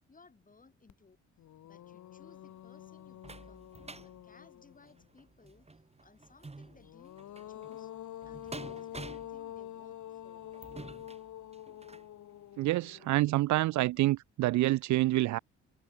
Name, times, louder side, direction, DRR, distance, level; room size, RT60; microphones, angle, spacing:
voice 1, 0.1-1.2 1.6-3.7 4.0-7.2 7.5-7.9 8.2-10.5, left 4 dB, 25° left, 4.5 m, -61 dB
sound 1, 0.9-1.0 1.4-5.0 6.7-14.0, left 12 dB, 75° left, 3.4 m, -47 dB
sound 2, 2.3-12.1 12.7-12.8 13.2-13.3, right 3 dB, 20° right, 7.7 m, -50 dB
voice 2, 12.6-15.4, right 17 dB, 70° right, 0.5 m, -27 dB
cardioid pair, 90°, 30 cm